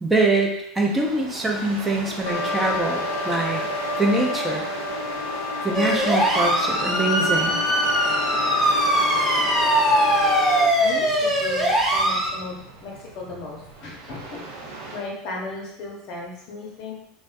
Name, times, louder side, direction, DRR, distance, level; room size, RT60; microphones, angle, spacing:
voice 1, 0.0-3.6 4.0-4.6 5.6-7.6, right 2 dB, 15° right, 0 dB, 0.5 m, -23 dB
sound 1, 0.9-15.0, right 3 dB, 75° right, 0.5 m, -38 dB
sound 2, 2.3-10.7, left 3 dB, 80° left, 0.3 m, -28 dB
sound 3, 5.7-12.3, right 1 dB, ahead, 0.8 m, -21 dB
voice 2, 10.8-16.9, left 2 dB, 55° left, -2 dB, 0.7 m, -36 dB
2.5 x 2.1 x 2.3 m, 0.75 s
hypercardioid pair, 75°, 0 cm